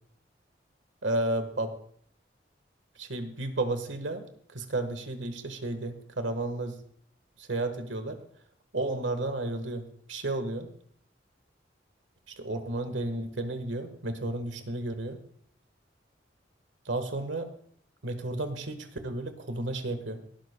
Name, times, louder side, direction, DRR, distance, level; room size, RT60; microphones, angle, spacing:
voice 1, 1.0-1.7 2.9-6.8 7.4-8.2 8.7-9.8 10.1-10.7 12.3-15.2 16.8-17.5 18.0-20.2, right 2 dB, 85° right, 8 dB, 1.5 m, -32 dB
18.0 x 11.5 x 2.3 m, 0.62 s
head